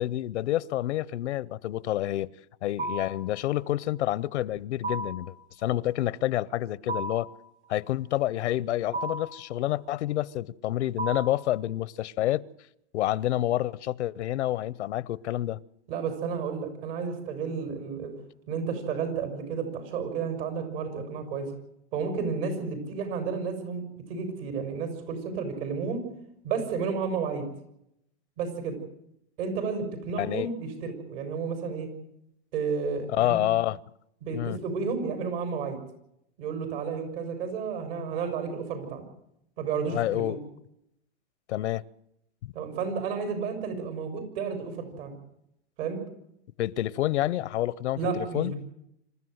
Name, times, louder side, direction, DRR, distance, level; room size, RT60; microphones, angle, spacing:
voice 1, 0.0-2.3 2.6-5.3 5.6-7.3 7.7-12.4 12.9-15.6 30.1-30.5 33.1-33.8 34.3-34.6 39.9-40.4 41.5-41.8 42.4-42.5 46.6-48.5, left 14 dB, 85° left, 0.8 m, -28 dB
sound 1, 2.8-3.3 4.8-5.3 6.9-7.4 8.9-9.4 11.0-11.5, right 2 dB, 75° right, 4.1 m, -33 dB
voice 2, 15.9-18.1 18.5-21.5 21.9-23.8 24.1-26.0 26.4-27.5 28.4-28.8 29.4-31.9 32.5-33.5 34.2-35.8 36.4-39.0 39.6-40.4 42.5-45.1 45.8-46.0 48.0-48.6, right 5 dB, 55° right, 6.4 m, -32 dB
26.5 x 14.0 x 8.0 m
supercardioid pair, 145°, 34 cm